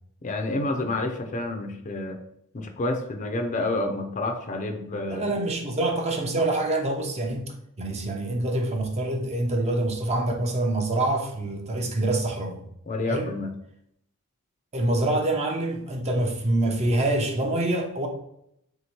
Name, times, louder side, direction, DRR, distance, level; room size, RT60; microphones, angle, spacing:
voice 1, 0.2-2.2 2.5-5.3 12.9-13.5, left 2 dB, 35° left, 5 dB, 0.5 m, -29 dB
voice 2, 5.1-12.6 13.1-13.3 14.7-18.1, right 2 dB, 30° right, 2 dB, 0.6 m, -26 dB
3.6 x 2.8 x 4.4 m, 0.75 s
head